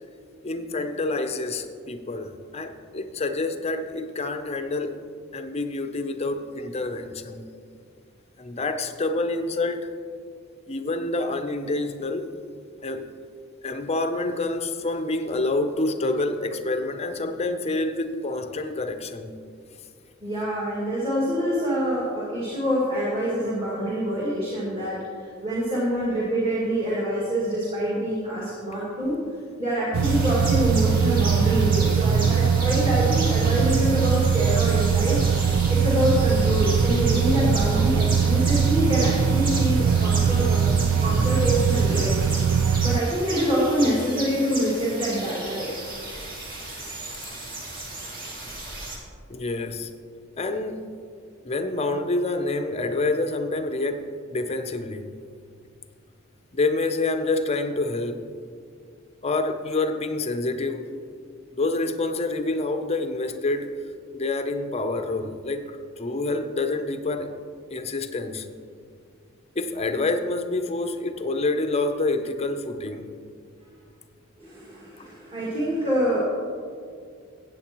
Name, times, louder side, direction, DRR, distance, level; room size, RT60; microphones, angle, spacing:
voice 1, 0.4-5.0 5.3-7.5 8.4-9.9 10.7-12.3 12.8-13.1 13.6-19.3 49.3-49.9 50.4-50.9 51.4-55.1 56.5-58.2 59.2-60.9 61.6-63.7 64.1-67.3 67.7-68.5 69.6-73.1, left 2 dB, 30° left, 7 dB, 0.6 m, -27 dB
voice 2, 20.2-29.2 29.6-35.2 35.7-40.7 41.0-42.2 42.8-45.7 74.4-76.2, equal, 25° right, -7 dB, 2.0 m, -26 dB
sound 1, 29.9-43.0, right 6 dB, 80° right, 0.4 m, -21 dB
sound 2, 30.0-49.0, right 2 dB, 45° right, 2.1 m, -34 dB
15.0 x 8.4 x 3.0 m, 2.2 s
head